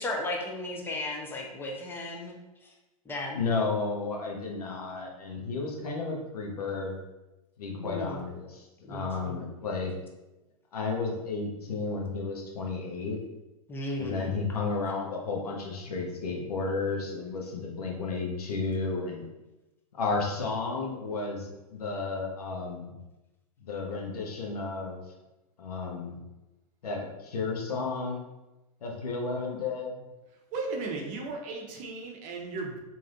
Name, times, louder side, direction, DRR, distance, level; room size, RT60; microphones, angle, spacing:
voice 1, 0.0-2.3 2.6-2.7 3.1-3.5 7.7-8.3 8.9-9.5 13.7-14.3, left 1 dB, 10° left, 0 dB, 0.5 m, -35 dB
voice 2, 3.3-6.9 7.6-9.9 10.7-13.2 14.0-19.2 19.9-22.9 23.6-25.0 25.6-26.2 26.8-28.2 28.8-30.1, left 4 dB, 80° left, -1 dB, 0.8 m, -32 dB
voice 3, 30.5-32.8, right 3 dB, 40° right, 1 dB, 0.7 m, -35 dB
3.3 x 2.6 x 2.6 m, 1.0 s
hypercardioid pair, 110°, 19 cm